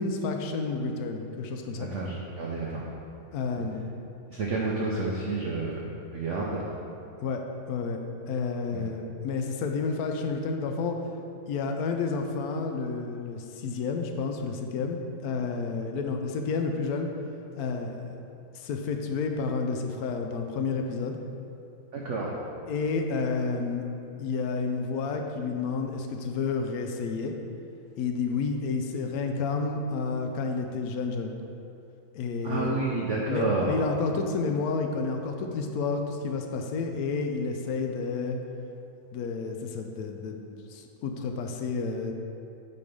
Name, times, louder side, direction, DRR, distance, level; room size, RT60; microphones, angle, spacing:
voice 1, 0.0-1.9 3.3-3.9 7.2-8.0 8.3-11.0 11.5-17.1 17.5-18.2 18.5-21.2 22.7-23.8 24.2-27.3 28.0-31.3 32.1-32.8 33.3-38.4 39.1-40.4 40.7-42.1, left 4 dB, 75° left, 4 dB, 0.8 m, -30 dB
voice 2, 1.8-2.8 3.6-3.7 4.3-5.9 6.1-6.6 8.7-8.8 21.9-22.4 32.4-33.7, right 3 dB, 70° right, -3 dB, 0.7 m, -30 dB
8.4 x 3.3 x 5.2 m, 2.7 s
omnidirectional pair, 2.1 m